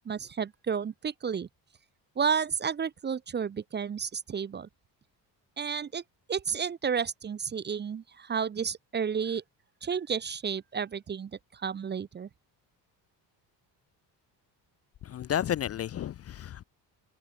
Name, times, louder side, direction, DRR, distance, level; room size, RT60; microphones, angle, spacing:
voice 1, 0.1-1.5 2.2-4.7 5.6-6.0 6.3-9.4 9.8-12.3, right 6 dB, 25° right, 0.5 m, -31 dB
voice 2, 15.0-16.6, left 10 dB, 35° left, 0.4 m, -32 dB
cardioid pair, 130°, 42 cm